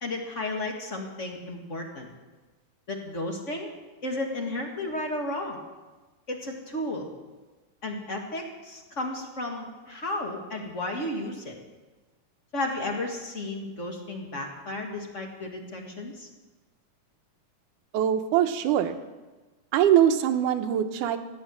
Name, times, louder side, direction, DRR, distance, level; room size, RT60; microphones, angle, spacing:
voice 1, 0.0-2.1 2.9-3.7 4.0-5.6 6.3-7.1 7.8-11.5 12.5-16.3, left 2 dB, 35° left, 2 dB, 1.3 m, -33 dB
voice 2, 17.9-19.0 19.7-21.2, right 10 dB, 85° right, 8 dB, 2.4 m, -22 dB
16.5 x 9.0 x 7.7 m, 1.2 s
omnidirectional pair, 3.6 m